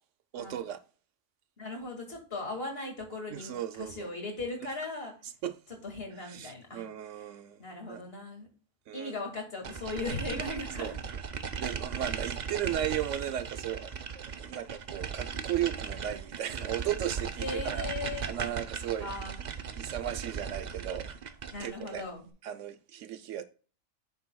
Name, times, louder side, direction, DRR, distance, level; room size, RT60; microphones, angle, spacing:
voice 1, 0.3-0.8 3.3-4.1 5.2-5.6 6.2-8.0 8.9-9.2 10.8-11.0 11.6-17.9 18.3-19.1 19.4-19.5 19.8-21.1 21.6-22.0 22.4-23.4, right 11 dB, 70° right, 0.9 m, -36 dB
voice 2, 1.6-3.5 3.8-5.1 5.8-6.8 7.6-8.5 8.9-10.9 12.0-12.1 17.4-18.3 19.0-19.4 21.5-22.3, left 3 dB, 50° left, 2.3 m, -38 dB
sound 1, 9.6-22.0, right 6 dB, 50° right, 0.6 m, -37 dB
8.6 x 6.9 x 2.2 m
omnidirectional pair, 1.3 m